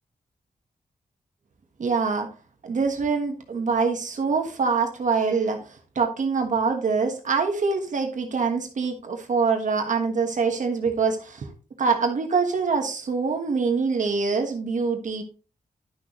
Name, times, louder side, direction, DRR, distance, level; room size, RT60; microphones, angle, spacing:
voice 1, 1.8-2.3 2.6-11.5 11.8-15.2, right 5 dB, 60° right, 3 dB, 1.4 m, -24 dB
11.0 x 6.4 x 3.0 m, 0.35 s
wide cardioid pair, 170°, 15 cm